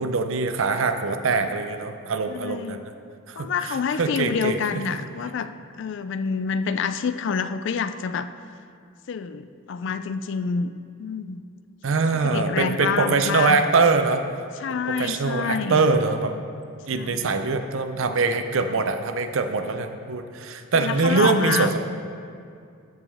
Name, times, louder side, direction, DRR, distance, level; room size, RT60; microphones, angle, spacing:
voice 1, 0.0-2.9 3.3-5.0 11.8-14.3 14.7-16.3 16.9-21.8, right 4 dB, 65° right, 7 dB, 0.5 m, -23 dB
voice 2, 2.3-2.8 3.4-5.5 5.8-8.3 9.1-10.7 11.0-11.4 12.2-13.6 14.6-15.8 16.9-17.3 20.8-21.7, left 6 dB, 55° left, 12 dB, 0.3 m, -27 dB
14.0 x 5.2 x 3.5 m, 2.3 s
head